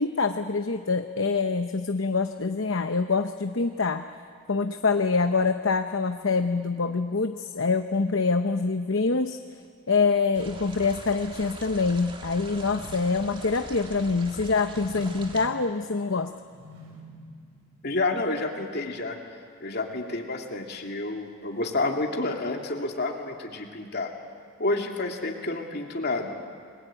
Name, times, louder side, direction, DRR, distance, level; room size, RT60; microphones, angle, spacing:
voice 1, 0.0-4.0 4.5-9.4 9.9-16.3, left 4 dB, 65° left, 7 dB, 0.9 m, -25 dB
sound 1, 10.3-15.5, right 2 dB, 25° right, 1.9 m, -43 dB
sound 2, 12.3-18.3, equal, 85° right, 5.0 m, -49 dB
voice 2, 17.8-19.2 19.6-24.1 24.6-26.3, left 2 dB, 50° left, 2 dB, 2.8 m, -29 dB
30.0 x 21.5 x 8.9 m, 2.1 s
head